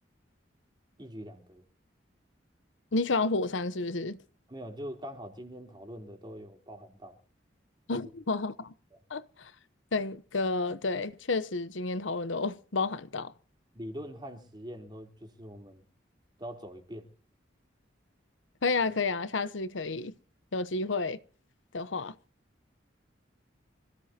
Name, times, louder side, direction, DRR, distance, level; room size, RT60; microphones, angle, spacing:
voice 1, 1.0-1.6 4.5-7.2 7.9-8.1 13.7-15.8 16.4-17.1, equal, 25° right, 3.5 m, -43 dB
voice 2, 2.9-4.2 7.9-8.7 9.1-9.5 9.9-13.3 18.6-20.1 20.5-21.2 21.7-22.1, left 3 dB, 80° left, 0.9 m, -31 dB
26.0 x 16.5 x 2.8 m
head